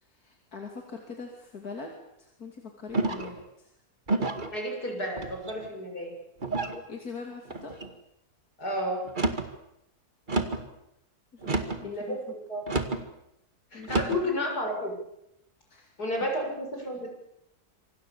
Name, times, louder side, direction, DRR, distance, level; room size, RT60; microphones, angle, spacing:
voice 1, 0.0-1.9 2.2-3.7 6.9-7.7 11.3-12.2 13.7-14.3 15.7-16.3, left 4 dB, 70° left, 2 dB, 3.2 m, -43 dB
sound 1, 2.9-3.4 4.1-4.5 5.2-5.7 6.4-6.8 7.5-7.9 9.0-9.5 10.3-10.7 11.4-11.9 12.7-13.0 13.8-14.2, right 3 dB, 30° right, 2.1 m, -29 dB
voice 2, 4.5-6.1 8.6-9.0 11.8-12.7 13.7-14.9 16.0-17.1, left 1 dB, 85° left, 2 dB, 7.5 m, -31 dB
27.0 x 25.0 x 7.1 m, 0.81 s
omnidirectional pair, 1.6 m